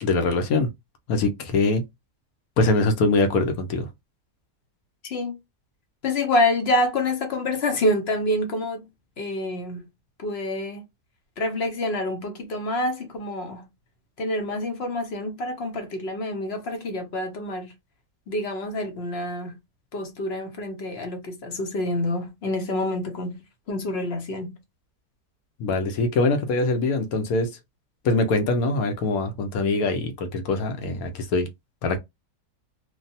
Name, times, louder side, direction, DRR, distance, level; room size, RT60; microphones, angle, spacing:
voice 1, 0.0-0.7 1.1-1.8 2.6-3.9 25.6-27.5 28.0-31.5 31.8-32.0, left 3 dB, 70° left, 1.1 m, -23 dB
voice 2, 5.0-5.3 6.0-8.9 9.2-9.8 10.2-10.8 11.4-13.6 14.2-17.7 18.3-19.6 19.9-23.4 23.7-24.6, left 1 dB, 50° left, 0.8 m, -27 dB
3.2 x 2.3 x 2.6 m
omnidirectional pair, 1.7 m